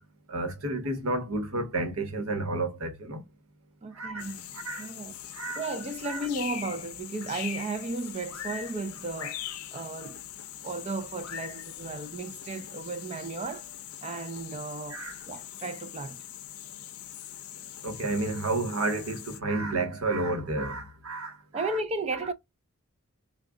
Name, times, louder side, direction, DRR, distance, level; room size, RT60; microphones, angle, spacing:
voice 1, 0.3-3.2 4.0-4.9 5.3-5.6 6.0-6.3 14.9-15.2 17.8-21.8, right 2 dB, 75° right, 1.1 m, -31 dB
voice 2, 3.8-4.5 4.8-5.2 5.6-9.4 9.7-10.3 10.6-13.7 14.0-16.2 21.5-22.3, right 2 dB, 30° right, 0.4 m, -34 dB
sound 1, 4.2-19.4, left 11 dB, 85° left, 0.5 m, -42 dB
3.6 x 2.3 x 3.7 m
head